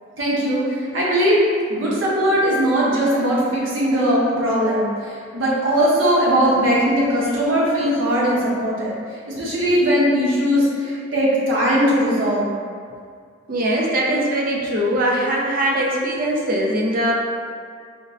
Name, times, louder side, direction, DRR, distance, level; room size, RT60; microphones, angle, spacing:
voice 1, 0.2-1.4 1.7-9.0 9.3-12.5, equal, 85° right, -7 dB, 0.9 m, -19 dB
voice 2, 13.5-17.1, right 1 dB, 45° right, -2 dB, 0.4 m, -21 dB
5.0 x 2.0 x 2.5 m, 2.2 s
head